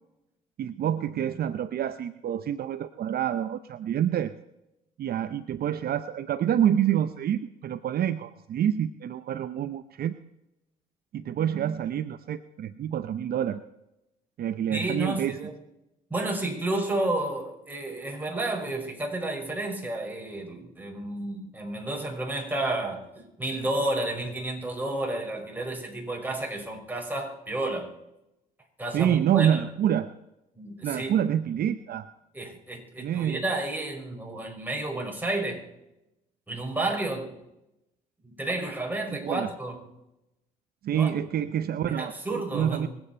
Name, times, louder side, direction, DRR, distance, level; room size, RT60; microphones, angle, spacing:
voice 1, 0.6-4.3 5.0-10.2 11.1-13.6 14.4-15.4 28.9-30.1 30.8-32.1 33.0-33.4 39.2-39.5 40.8-42.9, right 10 dB, 60° right, 12 dB, 0.7 m, -27 dB
voice 2, 14.7-15.6 16.1-27.9 28.8-29.6 30.5-31.1 32.3-35.7 36.5-37.3 38.2-39.8 40.9-41.1 41.9-42.9, right 2 dB, 10° right, -1 dB, 5.9 m, -31 dB
24.5 x 9.0 x 4.4 m, 0.89 s
supercardioid pair, 70°, 18 cm